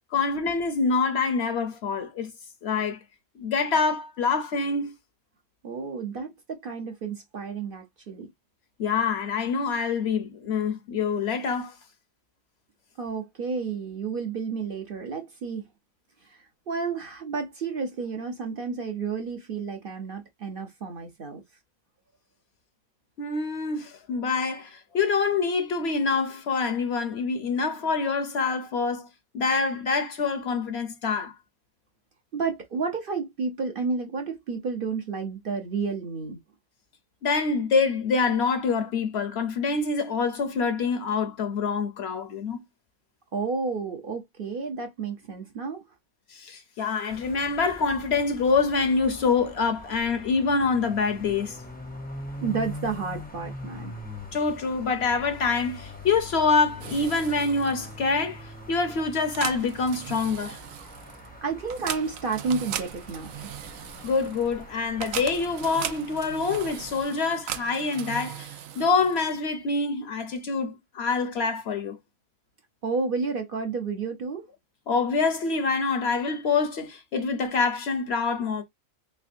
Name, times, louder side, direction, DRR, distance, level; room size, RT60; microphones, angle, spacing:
voice 1, 0.1-2.3 2.6-3.0 3.4-4.9 8.8-11.7 23.2-29.1 29.3-31.3 37.2-42.6 46.3-51.6 54.3-60.6 64.0-72.0 74.9-78.6, left 4 dB, 60° left, 0.8 m, -26 dB
voice 2, 5.6-8.3 13.0-15.6 16.2-21.4 32.3-36.4 43.3-45.8 51.2-51.4 52.4-53.9 61.4-63.3 72.8-74.5, right 4 dB, 50° right, 0.7 m, -31 dB
sound 1, 47.1-67.0, left 1 dB, 10° left, 0.6 m, -43 dB
sound 2, 56.8-69.5, right 10 dB, 85° right, 1.0 m, -39 dB
3.5 x 3.3 x 2.5 m
omnidirectional pair, 1.4 m